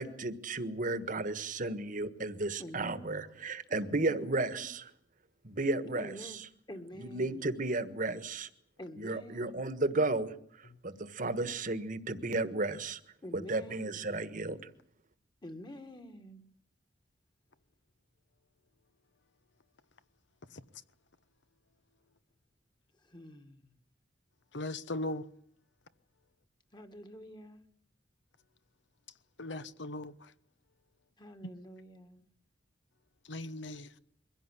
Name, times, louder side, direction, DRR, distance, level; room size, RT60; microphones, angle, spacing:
voice 1, 0.0-4.9 5.5-6.5 6.9-8.5 9.0-10.3 10.8-13.0 13.3-14.6, right 2 dB, 45° right, 1.5 m, -33 dB
voice 2, 2.6-3.1 3.7-4.7 5.9-6.4 6.7-7.5 8.8-9.7 13.2-14.0 15.4-16.4 23.0-23.7 26.7-27.6 31.2-32.3, equal, 25° left, 1.8 m, -48 dB
voice 3, 24.5-25.3 29.4-30.3 33.3-33.9, left 2 dB, 75° left, 1.1 m, -38 dB
23.0 x 16.5 x 9.9 m
head